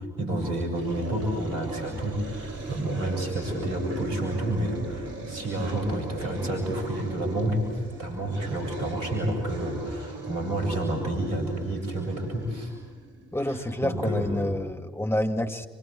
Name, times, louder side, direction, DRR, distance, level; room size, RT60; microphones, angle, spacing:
voice 1, 0.0-12.7 13.5-14.5, right 1 dB, 75° right, 3 dB, 7.9 m, -30 dB
sound 1, 0.7-13.7, right 2 dB, 55° right, 5.4 m, -39 dB
voice 2, 13.3-15.7, left 1 dB, 10° left, 6 dB, 2.3 m, -28 dB
26.5 x 26.5 x 7.7 m, 1.4 s
figure-of-eight pair, 45°, 30 cm